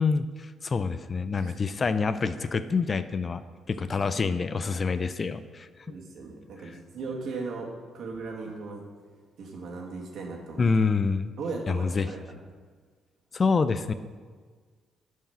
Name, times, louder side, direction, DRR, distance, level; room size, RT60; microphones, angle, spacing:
voice 1, 0.0-3.4 3.7-5.7 10.6-11.3 11.7-12.1 13.3-13.9, left 4 dB, 35° left, 12 dB, 0.4 m, -26 dB
voice 2, 5.9-7.7 7.9-8.8 9.4-10.7 11.4-12.4, right 3 dB, 70° right, -1 dB, 1.7 m, -37 dB
9.0 x 4.7 x 5.6 m, 1.5 s
cardioid pair, 90°, 0 cm